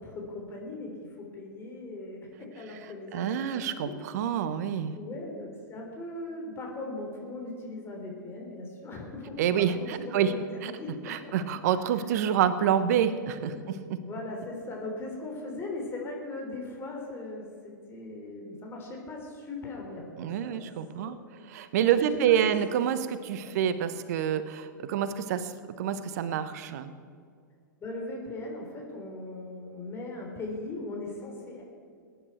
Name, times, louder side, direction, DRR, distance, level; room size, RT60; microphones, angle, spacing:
voice 1, 0.0-3.9 4.9-11.4 13.5-20.7 20.9-21.2 21.6-21.7 22.0-22.5 23.4-23.5 27.8-31.6, left 2 dB, 25° left, 0 dB, 3.3 m, -39 dB
voice 2, 3.1-5.0 9.4-10.7 11.1-14.0 20.2-21.2 21.5-25.5 25.8-26.9, right 9 dB, 55° right, 13 dB, 1.0 m, -27 dB
21.5 x 10.5 x 4.5 m, 2.2 s
figure-of-eight pair, 100°, 10 cm